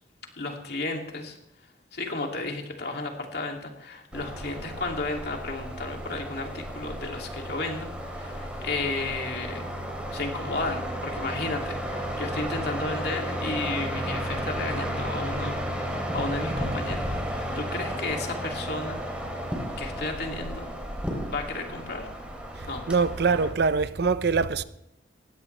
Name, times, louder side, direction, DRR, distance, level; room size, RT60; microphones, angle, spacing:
voice 1, 0.3-1.4 1.9-9.7 10.1-19.0 19.3-19.4 19.8-20.7 21.3-22.1 22.7-22.8, left 3 dB, 60° left, 2.7 m, -33 dB
sound 1, 4.1-23.5, equal, 5° right, 3.1 m, -33 dB
voice 2, 22.9-24.6, right 4 dB, 60° right, 0.6 m, -23 dB
19.0 x 16.0 x 3.3 m
head